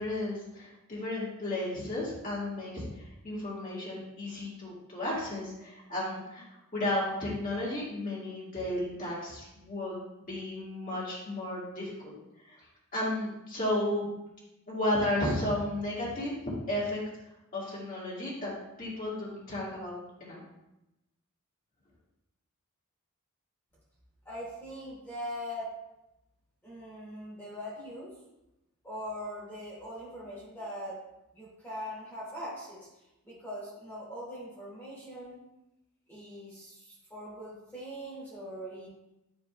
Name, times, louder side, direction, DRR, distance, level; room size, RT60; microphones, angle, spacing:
voice 1, 0.0-12.1 12.4-12.6 12.9-14.1 14.7-16.3 16.7-17.0 17.5-18.5 18.8-20.4, left 1 dB, 40° left, -7 dB, 2.1 m, -33 dB
voice 2, 24.2-25.7 26.6-28.1 28.8-31.0 31.3-32.9 33.2-35.4 36.1-38.9, equal, 10° left, -9 dB, 2.2 m, -41 dB
10.5 x 4.2 x 2.3 m, 0.92 s
head